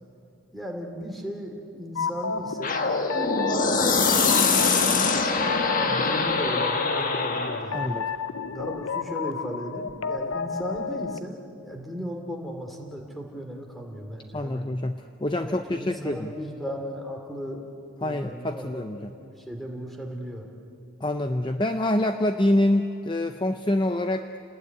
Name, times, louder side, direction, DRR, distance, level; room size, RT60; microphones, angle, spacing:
voice 1, 0.5-3.4 3.7-4.7 5.3-8.0 8.5-14.7 15.5-17.7 18.0-20.5, equal, ahead, 2 dB, 2.8 m, -36 dB
sound 1, 1.9-11.2, left 5 dB, 70° left, 0.6 m, -32 dB
sound 2, 2.6-7.7, left 4 dB, 40° left, 1.5 m, -23 dB
voice 2, 7.7-8.1 14.3-16.3 18.0-19.1 21.0-24.3, left 1 dB, 20° left, 7 dB, 0.6 m, -26 dB
29.0 x 19.5 x 9.5 m, 2.8 s
head